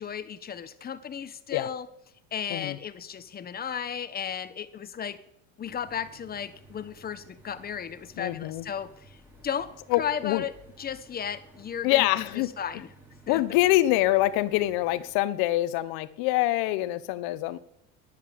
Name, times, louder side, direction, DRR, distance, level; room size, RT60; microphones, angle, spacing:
voice 1, 0.0-1.9 2.3-5.2 5.6-12.1 12.3-12.9 13.3-13.4, left 8 dB, 25° left, 13 dB, 1.0 m, -35 dB
sound 1, 5.6-15.1, right 1 dB, 5° right, 4.6 m, -55 dB
voice 2, 8.2-8.6 9.9-10.4 11.8-12.5 13.3-17.6, left 16 dB, 65° left, 16 dB, 1.0 m, -25 dB
10.5 x 10.5 x 8.8 m, 0.77 s
supercardioid pair, 130°, 39 cm